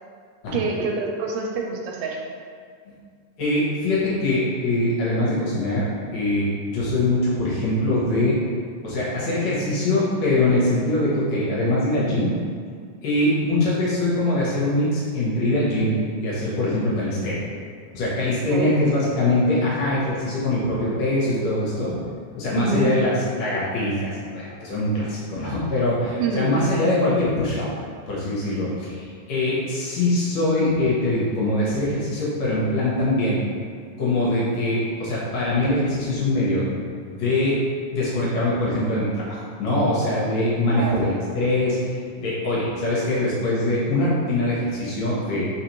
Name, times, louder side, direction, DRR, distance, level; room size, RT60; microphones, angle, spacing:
voice 1, 0.5-2.2 18.5-18.9 22.5-22.9 26.2-26.5 40.8-41.0, right 4 dB, 85° right, 0 dB, 2.2 m, -26 dB
voice 2, 3.4-5.9 6.1-8.4 8.8-12.3 13.0-17.4 17.9-22.0 22.4-27.7 28.1-33.4 34.0-36.7 37.1-37.6 37.9-45.5, left 1 dB, 70° left, -7 dB, 1.7 m, -23 dB
4.3 x 4.0 x 3.0 m, 2.1 s
omnidirectional pair, 3.8 m